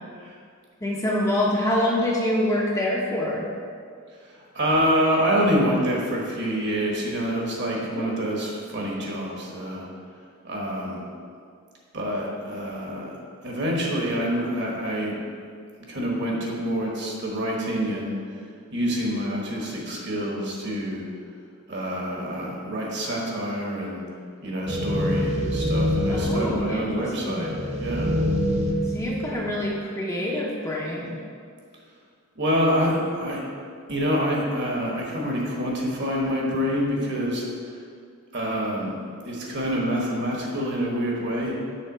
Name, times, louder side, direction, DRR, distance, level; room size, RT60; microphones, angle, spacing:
voice 1, 0.8-3.5 7.9-8.3 26.1-26.9 27.3-27.6 28.9-31.2, left 1 dB, 15° left, -4 dB, 0.7 m, -26 dB
voice 2, 4.2-9.9 10.4-11.1 11.9-13.1 13.4-15.1 15.9-18.2 18.7-21.1 21.7-24.0 24.4-27.5 27.8-28.2 29.3-29.5 32.3-33.4 33.9-37.5 38.3-38.9 39.2-41.6, equal, 55° right, -2 dB, 1.4 m, -26 dB
sound 1, 24.7-29.8, equal, 30° right, 0.6 m, -26 dB
6.7 x 3.7 x 6.1 m, 2.2 s
head